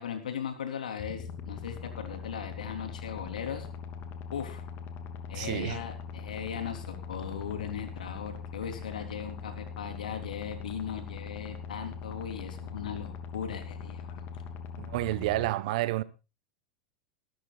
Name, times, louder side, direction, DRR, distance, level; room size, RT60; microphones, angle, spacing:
voice 1, 0.0-3.7 4.3-4.6 5.3-14.4, left 7 dB, 85° left, 3.6 m, -38 dB
sound 1, 1.0-15.5, left 6 dB, 50° left, 3.0 m, -41 dB
voice 2, 5.3-5.8 14.8-16.0, right 17 dB, 70° right, 1.2 m, -30 dB
20.5 x 13.5 x 2.5 m
hypercardioid pair, 95°, 4 cm